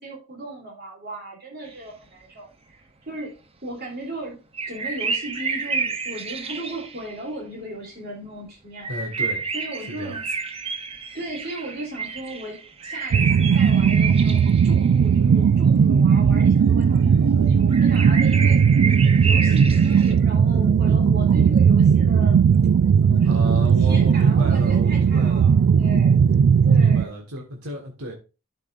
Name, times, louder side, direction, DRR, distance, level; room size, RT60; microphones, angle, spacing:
voice 1, 0.0-2.8 3.1-3.3 3.6-4.4 4.7-8.9 9.5-10.3 11.1-22.4 23.0-26.2 26.6-27.2, right 1 dB, 45° right, 3.0 m, -36 dB
sound 1, 4.5-7.2 8.8-15.1 17.7-20.1, right 5 dB, 25° right, 0.7 m, -30 dB
voice 2, 8.9-9.5 9.9-10.2 23.2-25.6 26.6-28.1, equal, 85° right, 1.6 m, -33 dB
sound 2, 13.1-27.0, right 6 dB, 65° right, 0.3 m, -17 dB
12.0 x 5.3 x 2.5 m
head